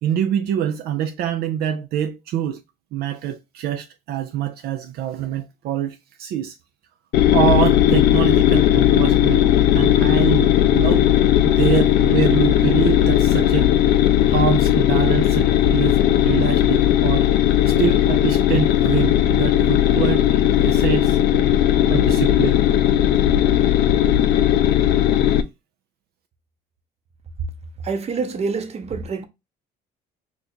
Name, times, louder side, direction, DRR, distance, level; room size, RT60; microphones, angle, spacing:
voice 1, 0.0-2.6 2.9-6.6 7.3-9.5 9.7-11.1 11.4-13.7 14.3-17.3 17.7-20.2 20.6-21.2 21.9-22.6, right 9 dB, 70° right, 0.4 m, -25 dB
sound 1, 7.1-25.4, left 11 dB, 80° left, 0.4 m, -17 dB
voice 2, 27.8-29.3, right 4 dB, 40° right, 0.7 m, -26 dB
2.8 x 2.4 x 4.3 m
cardioid pair, 110°, 17 cm